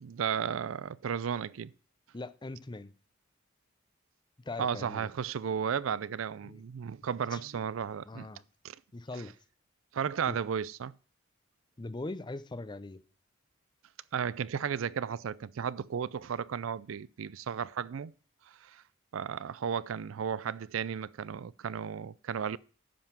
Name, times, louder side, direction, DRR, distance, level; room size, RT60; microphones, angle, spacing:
voice 1, 0.0-1.7 4.6-8.3 8.6-8.8 9.9-10.9 14.1-18.1 18.6-18.8 19.1-22.6, right 7 dB, 80° right, 0.4 m, -34 dB
voice 2, 2.1-2.9 4.5-5.1 6.4-6.6 7.3-7.4 8.1-8.4 8.9-9.3 10.3-10.4 11.8-13.0, left 2 dB, 20° left, 0.5 m, -40 dB
10.5 x 5.6 x 5.9 m
head